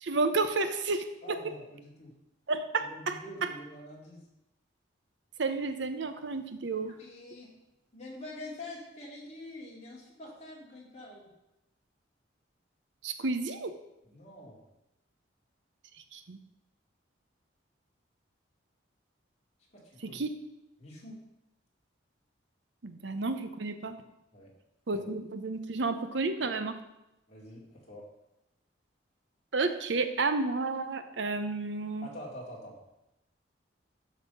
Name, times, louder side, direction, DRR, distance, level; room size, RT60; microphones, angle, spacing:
voice 1, 0.0-1.5 2.5-3.5 5.4-6.9 13.0-13.8 16.1-16.4 20.0-20.4 22.8-24.0 24.9-26.8 29.5-32.1, right 3 dB, 70° right, 9 dB, 0.8 m, -31 dB
voice 2, 1.2-2.1 2.8-4.2 6.9-7.5 7.9-11.3 14.1-14.6 19.7-20.2 20.8-21.2 24.3-24.5 24.9-25.1 27.3-28.0 32.0-32.8, left 1 dB, 35° left, -3 dB, 2.4 m, -46 dB
12.5 x 4.2 x 5.5 m, 0.91 s
head